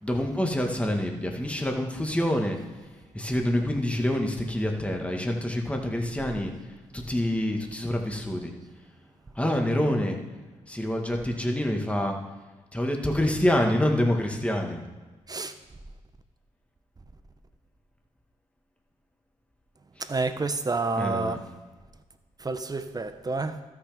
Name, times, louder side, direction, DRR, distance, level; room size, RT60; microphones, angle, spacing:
voice 1, 0.0-2.6 3.1-6.5 6.9-8.5 9.4-10.2 10.7-12.2 12.7-14.8 21.0-21.4, left 1 dB, 10° left, 2 dB, 1.9 m, -26 dB
voice 2, 20.0-21.4 22.4-23.6, right 3 dB, 30° right, 10 dB, 1.0 m, -29 dB
13.0 x 6.3 x 5.1 m, 1.3 s
supercardioid pair, 55°, 13 cm